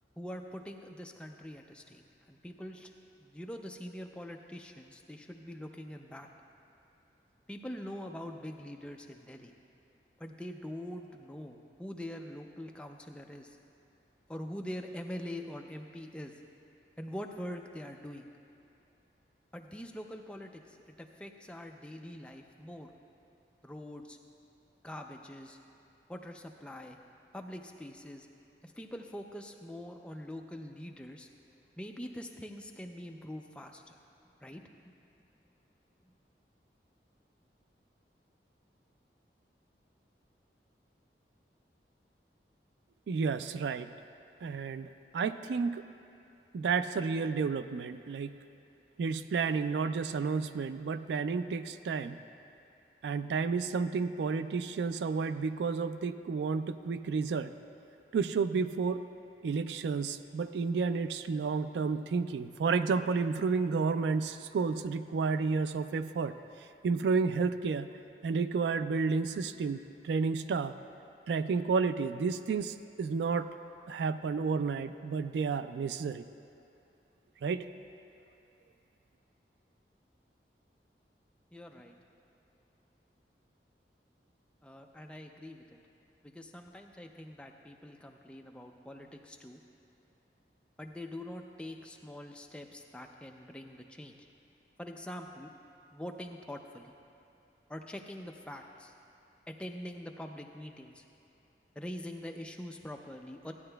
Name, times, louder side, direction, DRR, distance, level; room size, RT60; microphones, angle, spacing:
voice 1, 0.2-2.0 2.3-2.9 3.2-6.3 7.5-9.5 10.2-13.6 14.3-16.3 17.0-18.3 19.5-22.9 23.6-24.2 24.8-25.6 26.1-27.0 27.3-28.3 28.6-31.3 31.8-34.0 34.4-34.9 81.5-81.9 84.6-85.6 86.2-89.6 90.8-94.3 94.8-95.5 95.9-97.0 97.7-98.9 99.5-101.0 101.8-103.5, left 1 dB, 5° left, 3 dB, 0.4 m, -44 dB
voice 2, 43.1-43.9 44.4-45.8 46.5-48.4 49.0-52.2 53.0-57.5 58.1-59.0 59.4-66.3 66.8-67.9 68.2-70.8 71.3-73.5 73.9-76.2 77.4-77.6, right 5 dB, 80° right, 12 dB, 0.3 m, -31 dB
15.0 x 9.5 x 2.2 m, 2.6 s
head